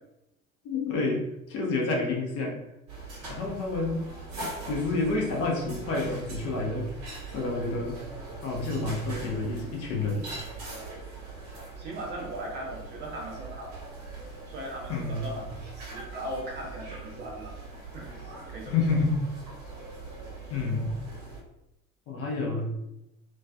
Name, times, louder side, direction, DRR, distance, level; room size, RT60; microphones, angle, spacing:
voice 1, 0.6-2.6 3.3-4.1 4.7-6.9 7.3-8.0 8.4-10.2 14.9-15.4 18.7-19.2 20.5-20.9 22.1-22.7, left 3 dB, 35° left, -1 dB, 0.6 m, -29 dB
sound 1, 2.9-21.4, right 3 dB, 50° right, 1.1 m, -41 dB
voice 2, 11.8-13.9 14.5-17.6 17.9-18.2 18.5-18.7, right 1 dB, 25° right, -2 dB, 0.6 m, -38 dB
2.4 x 2.3 x 2.2 m, 0.89 s
figure-of-eight pair, 70°, 42 cm